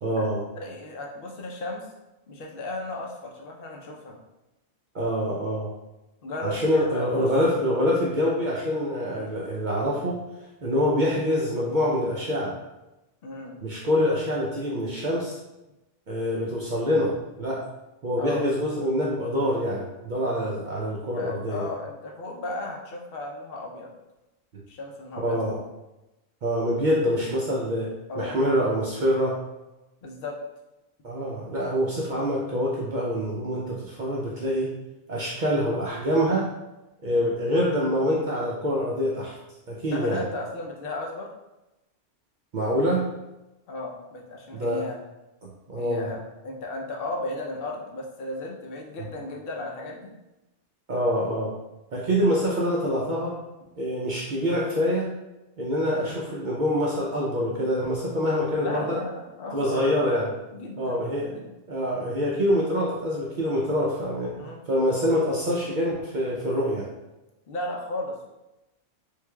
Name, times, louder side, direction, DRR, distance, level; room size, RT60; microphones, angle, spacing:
voice 1, 0.0-0.4 4.9-5.7 6.4-10.2 10.6-12.6 13.6-15.4 16.1-17.6 18.0-21.7 25.2-25.6 26.4-27.9 28.2-29.4 31.0-34.8 35.1-36.5 37.0-39.4 39.7-40.2 42.5-43.0 44.5-44.8 45.4-46.1 50.9-51.5 51.9-53.3 53.8-55.1 55.6-59.0 59.5-60.3 60.8-61.3 61.7-64.3 64.7-66.9, equal, 60° right, -4 dB, 0.5 m, -25 dB
voice 2, 0.5-1.9 2.3-4.2 6.2-7.3 9.0-9.4 13.2-13.6 18.2-18.5 21.2-23.9 24.7-25.6 28.1-28.4 30.0-30.4 37.1-37.3 39.9-41.3 43.7-45.0 45.8-50.1 56.0-56.2 58.6-60.0 60.5-61.5 64.4-64.6 67.5-68.3, left 2 dB, 60° left, 0 dB, 0.7 m, -35 dB
3.3 x 3.3 x 2.2 m, 0.99 s
omnidirectional pair, 1.3 m